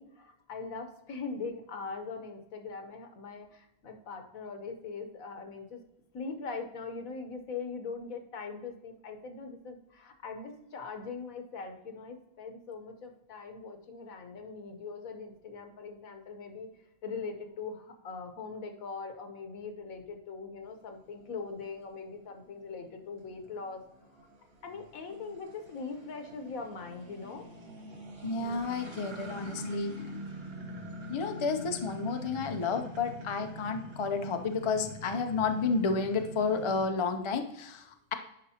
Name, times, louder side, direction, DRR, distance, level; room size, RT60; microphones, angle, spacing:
voice 1, 0.0-5.8 6.1-16.7 17.0-23.8 24.6-27.5 28.4-28.7, left 4 dB, 75° left, 6 dB, 1.4 m, -41 dB
sound 1, 20.8-36.9, equal, 45° right, 1.5 m, -45 dB
voice 2, 28.2-30.2 31.1-38.1, left 4 dB, 45° left, 6 dB, 0.3 m, -31 dB
9.9 x 5.1 x 2.8 m, 0.84 s
omnidirectional pair, 1.5 m